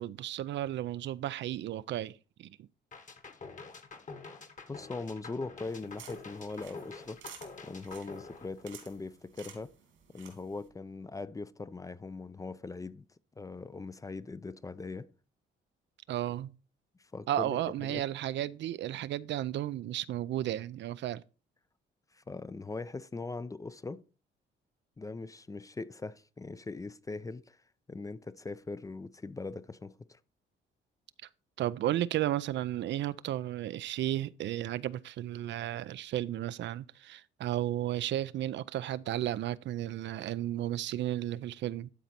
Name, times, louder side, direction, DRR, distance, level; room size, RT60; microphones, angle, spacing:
voice 1, 0.0-2.5 16.1-16.5 17.3-21.2 31.6-41.9, right 13 dB, 65° right, 0.4 m, -33 dB
sound 1, 2.9-9.1, left 4 dB, 40° left, 1.3 m, -47 dB
voice 2, 4.7-7.2 7.6-9.7 10.1-13.1 13.4-15.1 17.1-18.0 22.1-24.0 25.0-27.6 27.9-30.2, left 3 dB, 15° left, 0.4 m, -41 dB
sound 2, 5.6-10.7, right 8 dB, 80° right, 2.6 m, -54 dB
12.0 x 4.1 x 4.3 m
cardioid pair, 90°, 20 cm